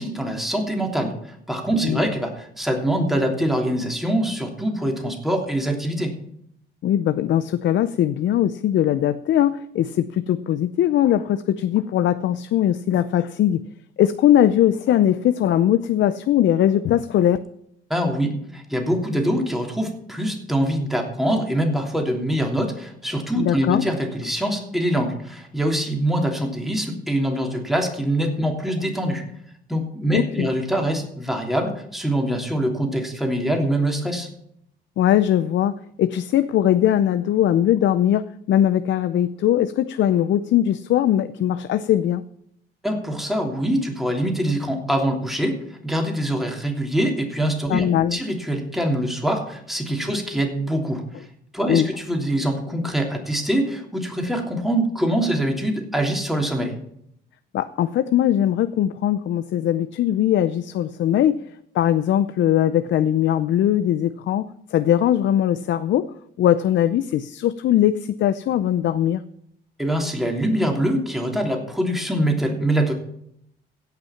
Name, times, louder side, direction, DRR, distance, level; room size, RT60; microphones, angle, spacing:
voice 1, 0.0-6.1 17.9-29.2 29.7-34.3 42.8-51.3 51.5-56.8 69.8-72.9, right 1 dB, ahead, 1 dB, 3.0 m, -24 dB
voice 2, 6.8-13.6 14.0-17.4 23.4-23.8 30.1-30.5 35.0-42.2 47.7-48.2 51.7-51.9 57.5-61.5 61.7-64.4 64.7-66.1 66.4-69.2, left 11 dB, 70° left, 13 dB, 0.6 m, -20 dB
16.5 x 6.0 x 5.8 m, 0.72 s
cardioid pair, 90°, 20 cm